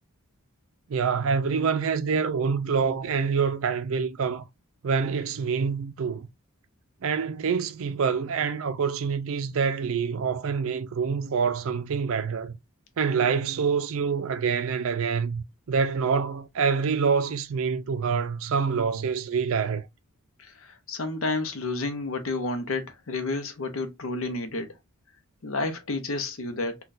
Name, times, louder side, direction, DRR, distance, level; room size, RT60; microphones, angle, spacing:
voice 1, 0.9-4.4 4.8-6.3 7.0-12.6 13.0-19.8, right 6 dB, 65° right, 0.4 m, -26 dB
voice 2, 20.4-24.7 25.4-26.8, left 2 dB, 65° left, 0.7 m, -30 dB
3.8 x 2.3 x 2.5 m
head